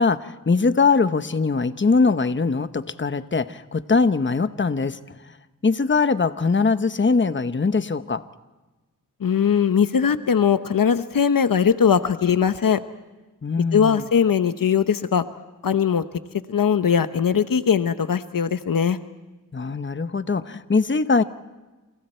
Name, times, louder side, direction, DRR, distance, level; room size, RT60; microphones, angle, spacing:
voice 1, 0.0-5.0 5.6-8.2 13.4-14.0 19.5-21.2, left 4 dB, 35° left, 11 dB, 1.0 m, -21 dB
voice 2, 9.2-12.8 13.7-15.2 15.6-16.0 16.5-19.0, left 7 dB, 85° left, 11 dB, 1.1 m, -20 dB
30.0 x 27.5 x 4.5 m, 1.1 s
wide cardioid pair, 65°, 33 cm